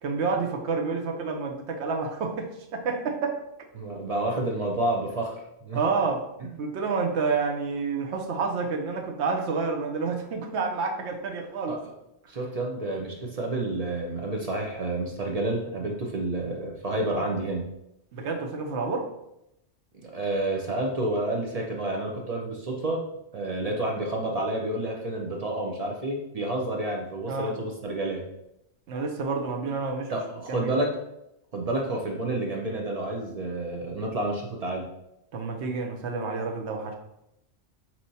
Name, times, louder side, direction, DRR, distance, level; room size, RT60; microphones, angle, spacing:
voice 1, 0.0-3.4 5.7-6.2 6.6-11.8 18.1-19.1 27.3-27.5 28.9-30.1 30.5-30.7 35.3-36.9, right 4 dB, 70° right, 3 dB, 0.9 m, -29 dB
voice 2, 3.8-5.8 6.4-6.5 11.7-11.8 12.3-17.7 20.0-23.0 23.3-28.3 30.1-30.9 31.5-34.9, right 1 dB, 50° right, 1 dB, 0.4 m, -29 dB
4.8 x 2.9 x 2.7 m, 0.83 s
omnidirectional pair, 1.3 m